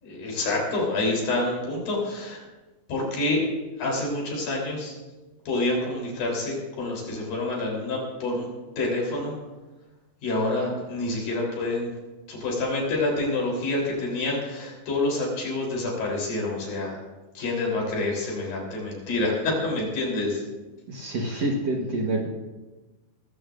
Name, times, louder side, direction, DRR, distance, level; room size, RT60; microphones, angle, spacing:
voice 1, 0.0-2.4 2.9-3.4 3.8-4.9 5.5-8.5 8.8-9.4 10.2-11.9 12.3-17.0 17.4-20.4, left 2 dB, 70° left, -2 dB, 5.4 m, -27 dB
voice 2, 20.9-22.3, right 2 dB, 55° right, -1 dB, 2.1 m, -27 dB
19.5 x 15.5 x 2.6 m, 1.2 s
omnidirectional pair, 4.3 m